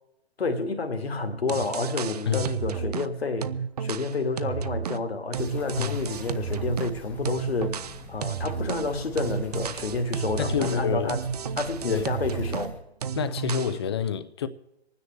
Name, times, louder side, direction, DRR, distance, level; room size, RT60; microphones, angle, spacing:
voice 1, 0.4-3.5 3.8-7.8 8.1-11.2 11.6-12.8, left 3 dB, 70° left, 2.0 m, -29 dB
sound 1, 1.5-3.1 3.4-7.0 7.2-12.7 13.0-13.8, right 7 dB, 40° right, 0.5 m, -32 dB
sound 2, 5.3-12.8, left 1 dB, 5° left, 1.0 m, -44 dB
voice 2, 10.4-11.1 11.8-12.1 13.1-14.5, left 7 dB, 25° left, 0.5 m, -28 dB
27.5 x 9.7 x 3.3 m
figure-of-eight pair, 135°, 32 cm